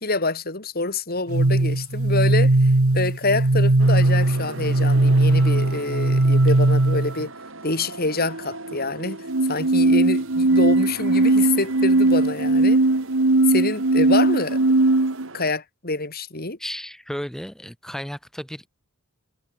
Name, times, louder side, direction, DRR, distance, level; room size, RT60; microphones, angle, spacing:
voice 1, 0.0-7.3 7.6-12.8 13.5-14.6 15.3-16.6, left 3 dB, 45° left, 4.1 m, -26 dB
sound 1, 1.3-7.3 9.3-15.3, right 2 dB, 80° right, 1.4 m, -18 dB
sound 2, 3.8-15.5, right 2 dB, 65° right, 5.3 m, -39 dB
voice 2, 16.6-18.7, equal, ahead, 3.7 m, -34 dB
head